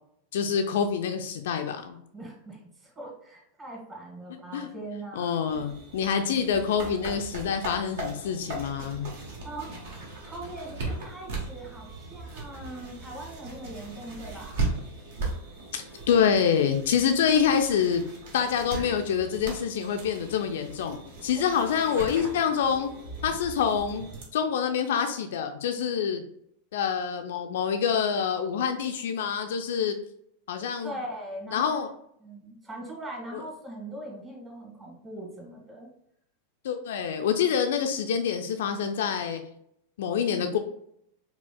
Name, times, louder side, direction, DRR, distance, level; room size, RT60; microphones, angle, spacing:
voice 1, 0.3-2.0 4.5-4.7 5.2-9.1 15.7-18.0 18.3-22.9 23.2-26.2 26.7-29.9 30.5-30.9 31.5-31.9 33.3-33.4 36.6-39.4 40.0-40.6, left 7 dB, 55° left, 6 dB, 0.4 m, -26 dB
voice 2, 2.1-5.6 9.0-14.6 21.4-21.7 30.8-31.8 32.2-35.9, right 1 dB, 20° right, -1 dB, 1.6 m, -41 dB
sound 1, 5.5-24.2, right 2 dB, 55° right, 1.2 m, -38 dB
4.9 x 3.3 x 2.2 m, 0.71 s
figure-of-eight pair, 90°, 0 cm